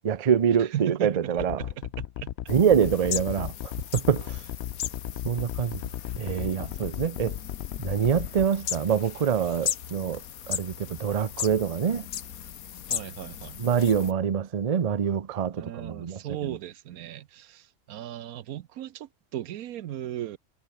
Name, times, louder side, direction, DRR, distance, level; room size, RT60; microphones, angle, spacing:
voice 1, 0.0-1.6 2.5-3.5 3.9-4.4 5.2-5.8 6.2-7.4 7.8-10.2 10.5-12.1 13.6-16.6, right 7 dB, 40° right, 0.6 m, -25 dB
voice 2, 0.6-2.3 12.9-13.6 15.5-20.4, right 12 dB, 85° right, 1.2 m, -37 dB
sound 1, 1.4-8.5, left 11 dB, 60° left, 0.7 m, -35 dB
sound 2, 2.5-14.1, left 9 dB, 80° left, 1.5 m, -37 dB
omnidirectional pair, 1.5 m